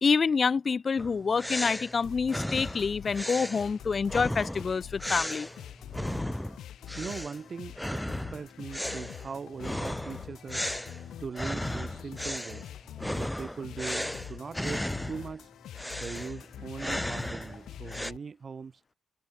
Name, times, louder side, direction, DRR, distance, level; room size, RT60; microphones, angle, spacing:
voice 1, 0.0-5.5, left 5 dB, 35° left, 0.9 m, -27 dB
sound 1, 1.0-6.6 6.9-7.4 7.8-15.4 15.8-18.1, left 1 dB, 5° left, 0.9 m, -35 dB
sound 2, 2.0-18.2, left 11 dB, 85° left, 4.0 m, -45 dB
voice 2, 6.9-10.6 11.2-12.7 13.1-15.5 16.0-18.8, right 5 dB, 35° right, 1.7 m, -40 dB
open air
wide cardioid pair, 150°, 0 cm